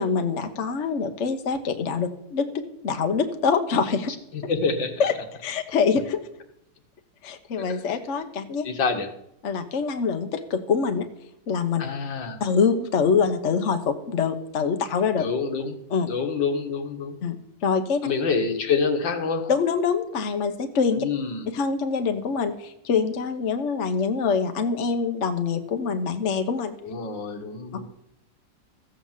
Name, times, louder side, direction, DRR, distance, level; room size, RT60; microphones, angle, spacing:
voice 1, 0.0-4.1 4.4-4.5 5.0-5.1 5.4-6.2 7.2-8.7 9.4-11.1 11.5-11.8 12.4-15.3 15.9-16.1 17.2-17.4 17.6-18.1 19.5-21.0 21.5-26.8, left 5 dB, 45° left, 7 dB, 1.1 m, -25 dB
voice 2, 4.3-5.1 7.6-7.8 8.6-9.1 11.8-12.4 15.2-15.8 16.0-17.2 18.0-19.5 21.0-21.5 26.8-27.8, left 5 dB, 75° left, 5 dB, 2.1 m, -27 dB
14.5 x 7.8 x 7.3 m, 0.80 s
omnidirectional pair, 2.1 m